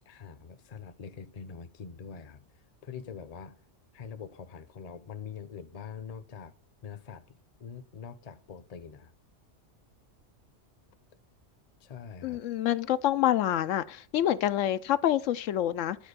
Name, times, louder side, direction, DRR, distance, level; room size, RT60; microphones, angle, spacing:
voice 1, 0.1-2.5 2.8-3.6 3.9-6.5 6.8-9.1 11.8-12.4, left 6 dB, 40° left, 0.7 m, -44 dB
voice 2, 12.2-16.0, left 12 dB, 85° left, 1.0 m, -27 dB
10.5 x 4.3 x 6.6 m
omnidirectional pair, 1.3 m